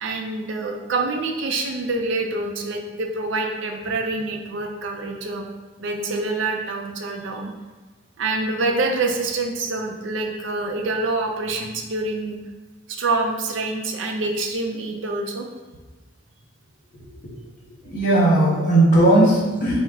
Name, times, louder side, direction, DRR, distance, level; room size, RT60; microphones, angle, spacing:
voice 1, 0.0-5.5 5.8-7.5 8.2-12.4 12.9-15.5, right 3 dB, 80° right, 2 dB, 0.5 m, -26 dB
voice 2, 17.8-19.8, right 1 dB, 40° left, -4 dB, 1.1 m, -17 dB
4.6 x 2.1 x 3.5 m, 1.3 s
head